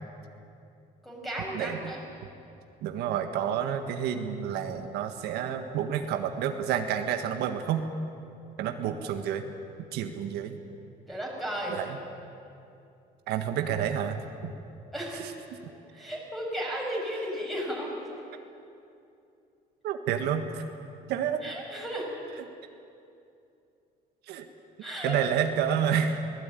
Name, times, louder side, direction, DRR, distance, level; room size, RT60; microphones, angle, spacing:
voice 1, 1.0-2.0 11.1-11.8 14.9-15.3 15.9-18.1 21.4-22.1 24.8-25.2, equal, ahead, -2 dB, 6.6 m, -34 dB
voice 2, 2.8-7.9 8.6-9.5 9.9-10.6 11.7-12.0 13.3-14.5 19.8-20.6 21.1-21.4 24.3-24.5 25.0-26.2, right 8 dB, 90° right, 6 dB, 1.6 m, -29 dB
23.0 x 18.5 x 9.2 m, 2.7 s
cardioid pair, 135°, 17 cm